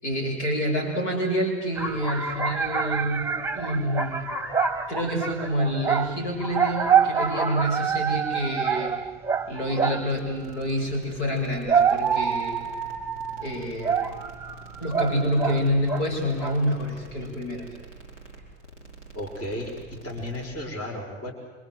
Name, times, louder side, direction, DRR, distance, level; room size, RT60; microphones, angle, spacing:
voice 1, 0.0-4.4 4.9-8.9 9.5-12.6 13.4-14.1 14.8-17.7, equal, 75° left, 1 dB, 7.4 m, -27 dB
sound 1, 1.7-10.2 11.3-16.1 16.4-16.8, right 6 dB, 5° right, 1.2 m, -26 dB
sound 2, 10.1-20.5, right 3 dB, 90° left, 5.3 m, -46 dB
voice 2, 19.1-21.3, left 1 dB, 40° left, 0 dB, 5.7 m, -34 dB
26.0 x 26.0 x 7.9 m, 1.3 s
figure-of-eight pair, 75°, 35 cm